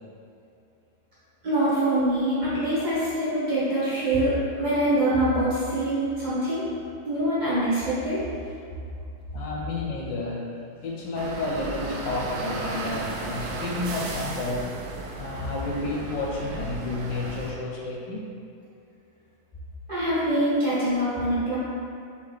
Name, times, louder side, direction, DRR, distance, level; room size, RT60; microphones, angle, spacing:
voice 1, 1.4-6.7 7.0-8.2 19.9-21.6, right 1 dB, 25° right, -11 dB, 1.3 m, -24 dB
voice 2, 9.3-14.8 15.2-18.3, left 2 dB, 75° left, -3 dB, 1.2 m, -31 dB
sound 1, 11.1-17.5, right 2 dB, 75° right, 1.2 m, -34 dB
4.0 x 3.3 x 3.2 m, 2.5 s
omnidirectional pair, 2.2 m